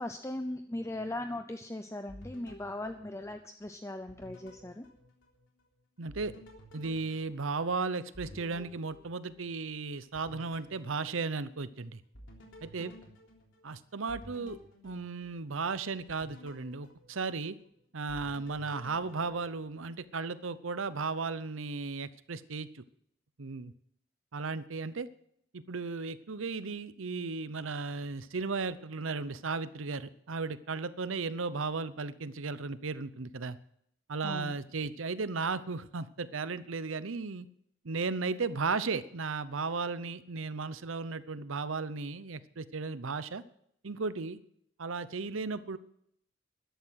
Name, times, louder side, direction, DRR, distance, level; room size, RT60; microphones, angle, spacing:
voice 1, 0.0-4.9 12.8-12.9 34.2-34.5, left 1 dB, 15° left, 7 dB, 0.6 m, -39 dB
sound 1, 2.1-3.7 4.1-5.7 6.1-9.7 10.1-11.7 12.1-15.6 16.1-17.7 18.1-20.0, left 1 dB, 70° left, 3.5 m, -53 dB
voice 2, 6.0-6.3 6.7-12.0 12.6-12.9 13.6-14.6 14.8-17.6 17.9-22.8 23.4-23.7 24.3-25.1 25.5-33.6 34.1-37.5 37.8-43.4 43.8-44.4 44.8-45.8, right 4 dB, 80° right, 15 dB, 0.8 m, -35 dB
13.5 x 11.5 x 6.4 m, 0.71 s
head